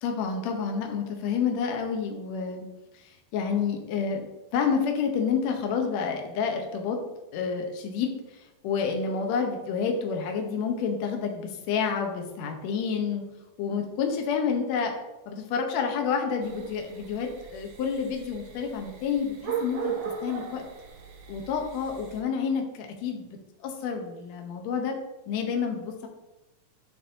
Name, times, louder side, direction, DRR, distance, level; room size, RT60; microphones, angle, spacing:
voice 1, 0.0-2.7 3.3-4.2 4.5-7.0 7.3-8.1 8.6-13.2 13.6-14.9 15.3-19.9 20.2-20.6 21.3-25.0 25.3-26.1, left 6 dB, 70° left, 3 dB, 1.9 m, -29 dB
sound 1, 16.4-22.2, right 7 dB, 70° right, 1.8 m, -38 dB
11.0 x 4.0 x 2.6 m, 1.0 s
omnidirectional pair, 3.8 m